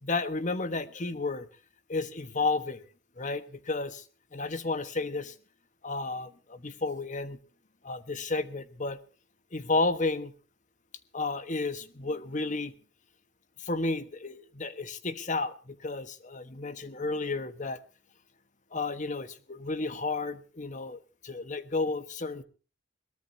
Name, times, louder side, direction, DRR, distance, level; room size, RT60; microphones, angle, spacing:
voice 1, 0.0-1.5 1.9-2.9 3.2-4.0 4.3-5.3 5.8-7.4 7.8-9.0 9.5-10.3 11.1-12.7 13.6-17.8 18.7-22.4, left 3 dB, 40° left, 12 dB, 1.3 m, -32 dB
22.0 x 18.5 x 2.8 m, 0.36 s
head